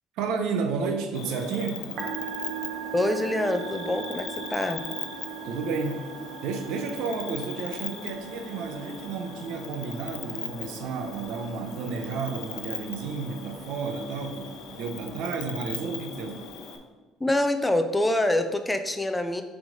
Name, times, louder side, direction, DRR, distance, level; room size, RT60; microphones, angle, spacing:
voice 1, 0.1-1.8 5.4-6.1 6.4-16.5, right 5 dB, 75° right, 6 dB, 0.8 m, -32 dB
Cricket, 1.1-16.8, left 7 dB, 65° left, 0.7 m, -39 dB
Musical instrument, 1.8-16.5, right 10 dB, 60° right, 1.2 m, -41 dB
voice 2, 2.9-4.8 17.2-19.4, left 1 dB, 10° left, 8 dB, 0.4 m, -25 dB
6.0 x 3.7 x 5.1 m, 1.3 s
cardioid pair, 130°, 0 cm